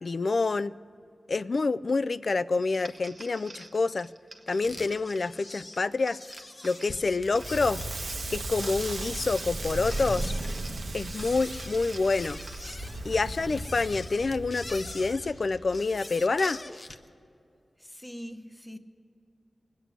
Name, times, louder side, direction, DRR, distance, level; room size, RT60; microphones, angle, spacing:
voice 1, 0.0-0.8 1.3-4.1 4.5-6.2 6.6-7.8 8.3-10.3 10.9-12.4 13.0-16.6, left 3 dB, 60° left, 15 dB, 0.3 m, -27 dB
sound 1, 2.7-12.9, right 2 dB, 45° right, 0.9 m, -50 dB
sound 2, 4.6-17.1, left 2 dB, 40° left, 0.8 m, -44 dB
Crackle, 7.2-16.2, right 2 dB, 80° right, 1.1 m, -36 dB
voice 2, 17.8-18.8, equal, 10° left, 8 dB, 0.8 m, -42 dB
20.5 x 8.2 x 7.7 m, 2.5 s
wide cardioid pair, 90°, 0 cm